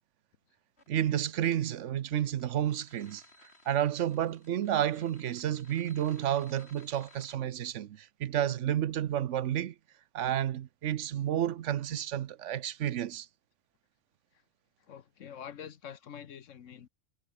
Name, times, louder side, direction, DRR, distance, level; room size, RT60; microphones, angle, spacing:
sound 1, 0.8-7.4, left 2 dB, 55° left, 5.0 m, -59 dB
voice 1, 0.9-3.2 3.7-9.7 10.1-13.3, right 11 dB, 75° right, 1.0 m, -31 dB
voice 2, 14.9-16.9, left 8 dB, 80° left, 1.4 m, -46 dB
omnidirectional pair, 1.3 m